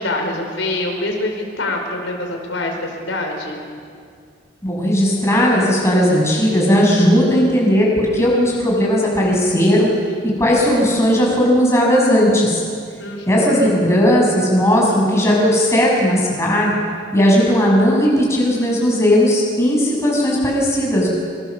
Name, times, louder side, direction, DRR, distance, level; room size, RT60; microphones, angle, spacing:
voice 1, 0.0-3.6 13.0-13.7, left 2 dB, 90° left, 2 dB, 5.1 m, -25 dB
voice 2, 4.6-9.9 10.2-12.6 13.3-16.8 17.1-21.1, equal, 15° left, -3 dB, 7.2 m, -16 dB
27.0 x 26.5 x 7.4 m, 2.2 s
head